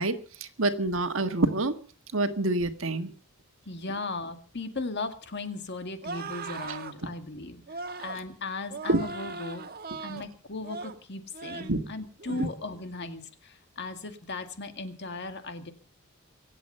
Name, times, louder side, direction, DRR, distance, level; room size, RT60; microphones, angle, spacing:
voice 1, 0.0-1.8 2.1-3.1 8.9-9.1 11.7-11.8 12.3-12.5, right 2 dB, 65° right, 8 dB, 1.6 m, -27 dB
voice 2, 3.7-7.6 8.0-9.7 10.0-15.7, left 3 dB, 55° left, 7 dB, 2.0 m, -37 dB
sound 1, 6.0-6.9 7.7-8.2 8.7-10.3 10.6-11.0 11.3-11.8 12.2-12.5, right 4 dB, 45° right, 1.5 m, -39 dB
25.0 x 8.4 x 5.4 m, 0.39 s
head